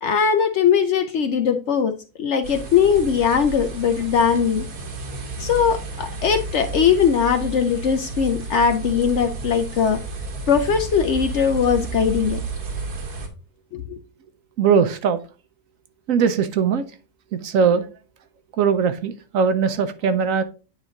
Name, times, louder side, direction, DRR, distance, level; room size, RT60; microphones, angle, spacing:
voice 1, 0.0-1.9 2.2-4.7 5.4-10.0 10.5-12.4 13.7-14.0, left 7 dB, 65° left, 0.7 m, -20 dB
sound 1, 2.4-13.3, right 3 dB, 85° right, 1.9 m, -32 dB
voice 2, 14.6-15.2 16.1-16.8 17.3-17.8 18.6-20.4, right 6 dB, 65° right, 0.9 m, -20 dB
9.3 x 3.2 x 3.8 m
omnidirectional pair, 1.6 m